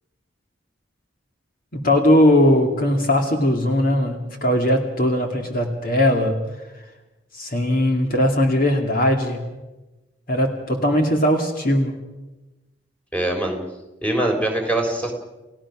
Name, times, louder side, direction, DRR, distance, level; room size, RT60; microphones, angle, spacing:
voice 1, 1.7-6.4 7.3-9.5 10.3-11.9, left 1 dB, 50° left, 3 dB, 2.4 m, -19 dB
voice 2, 13.1-13.6 14.0-15.1, right 1 dB, 5° left, 2 dB, 3.6 m, -22 dB
30.0 x 16.5 x 6.2 m, 1.1 s
head